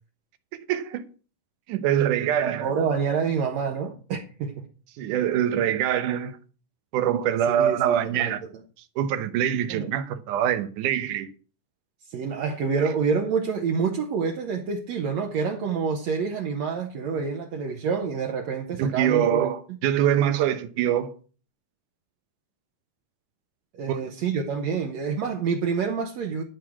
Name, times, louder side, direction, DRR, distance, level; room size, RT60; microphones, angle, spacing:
voice 1, 0.5-1.0 1.7-2.7 5.0-6.4 6.9-8.4 9.0-11.3 18.8-21.1 23.9-24.0, right 10 dB, 85° right, 2.5 m, -24 dB
voice 2, 2.4-4.7 7.6-8.3 9.7-9.9 12.1-19.4 23.7-26.4, right 5 dB, 65° right, 2.2 m, -27 dB
13.0 x 4.7 x 7.3 m
omnidirectional pair, 3.5 m